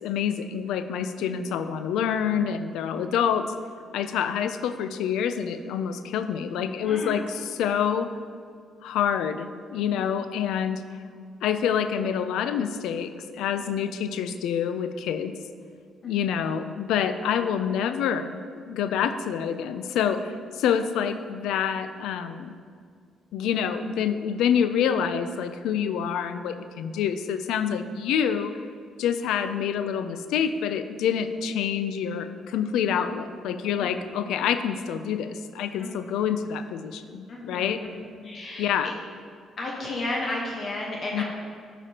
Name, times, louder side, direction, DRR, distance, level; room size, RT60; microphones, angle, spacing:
voice 1, 0.0-3.5 3.9-8.1 8.8-10.8 11.4-15.3 16.0-18.4 18.7-20.2 20.5-22.5 23.3-28.6 29.0-37.8 38.6-38.9 41.1-41.2, left 8 dB, 90° left, 10 dB, 0.4 m, -27 dB
voice 2, 1.2-1.6 5.9-6.0 6.8-7.2 9.8-10.1 13.6-13.7 16.0-16.3 27.7-27.9 32.9-33.0 33.8-34.1 35.8-36.3 37.3-38.7 39.6-41.2, left 2 dB, 50° left, -2 dB, 1.0 m, -35 dB
12.0 x 5.0 x 2.8 m, 2.1 s
cardioid pair, 90°, 0 cm